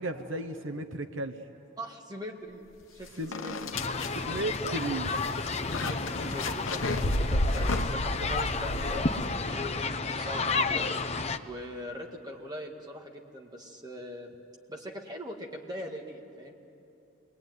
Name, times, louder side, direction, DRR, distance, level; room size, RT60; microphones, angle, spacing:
voice 1, 0.0-1.4 3.2-3.3 4.2-5.1, right 2 dB, 65° right, 8 dB, 0.9 m, -34 dB
voice 2, 1.8-2.6 2.9-3.7 5.9-10.9 11.5-14.3 14.7-16.5, equal, 20° right, 1 dB, 1.9 m, -41 dB
sound 1, 2.8-2.9 3.3-9.7, left 1 dB, 70° left, 1.0 m, -32 dB
sound 2, 3.7-11.4, left 3 dB, 30° left, 0.7 m, -31 dB
28.0 x 21.5 x 9.4 m, 2.9 s
head